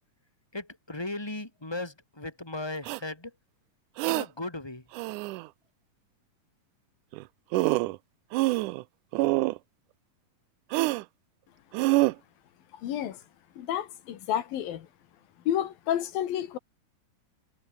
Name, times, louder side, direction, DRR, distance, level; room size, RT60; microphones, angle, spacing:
voice 1, 0.5-3.3 4.0-4.8, left 2 dB, 5° left, 4.5 m, -37 dB
sound 1, 2.9-3.0 4.0-4.3 4.9-5.5 7.1-7.2 7.5-8.0 8.3-8.8 9.1-9.6 10.7-11.0 11.7-12.1, right 20 dB, 80° right, 1.9 m, -26 dB
voice 2, 12.7-13.2 13.6-14.9 15.5-16.6, left 11 dB, 85° left, 3.5 m, -30 dB
omnidirectional pair, 4.0 m